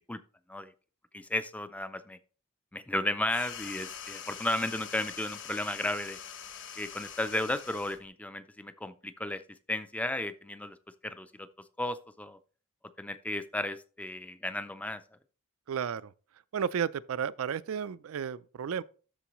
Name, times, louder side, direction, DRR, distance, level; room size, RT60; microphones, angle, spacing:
voice 1, 1.1-2.2 2.7-6.2 6.8-10.8 11.0-11.5 11.8-12.4 13.0-15.0, left 1 dB, 5° left, 0.4 m, -34 dB
sound 1, 3.2-8.1, left 8 dB, 55° left, 0.9 m, -44 dB
voice 2, 15.7-16.1 16.5-18.8, right 7 dB, 65° right, 0.4 m, -33 dB
12.5 x 4.6 x 3.0 m
head